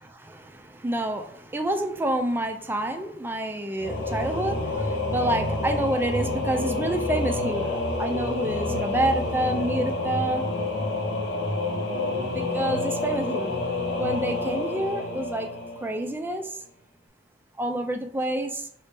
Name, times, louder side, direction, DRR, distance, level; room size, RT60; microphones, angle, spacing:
voice 1, 0.2-10.4 12.2-13.5 13.9-15.5 15.8-16.6 17.6-18.7, right 1 dB, 10° right, 0.3 m, -28 dB
Singing / Musical instrument, 3.8-16.3, left 2 dB, 70° left, 0.7 m, -28 dB
3.2 x 2.7 x 3.3 m
head